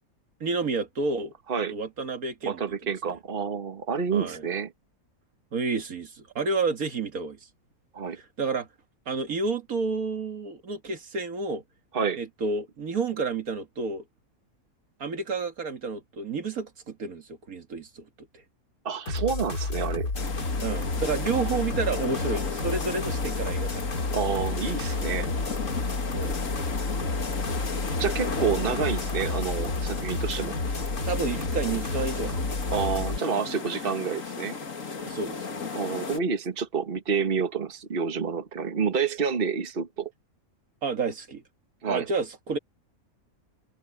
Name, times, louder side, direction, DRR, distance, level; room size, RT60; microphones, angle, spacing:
voice 1, 0.4-1.3 1.7-2.6 4.1-4.5 5.5-7.4 8.1-8.7 9.1-11.6 12.2-14.0 15.0-18.0 18.3-18.4 20.6-24.0 26.1-26.4 31.0-32.6 35.0-35.7 40.8-41.4 41.9-42.6, right 4 dB, 75° right, 2.1 m, -30 dB
voice 2, 2.4-4.7 7.9-8.2 11.9-12.2 18.9-20.1 24.1-25.3 28.0-30.6 32.7-34.6 35.8-40.1 41.8-42.1, right 6 dB, 40° right, 1.6 m, -28 dB
sound 1, 19.1-33.2, left 3 dB, 90° left, 3.3 m, -31 dB
sound 2, 20.1-36.2, left 5 dB, 60° left, 2.4 m, -35 dB
omnidirectional pair, 1.5 m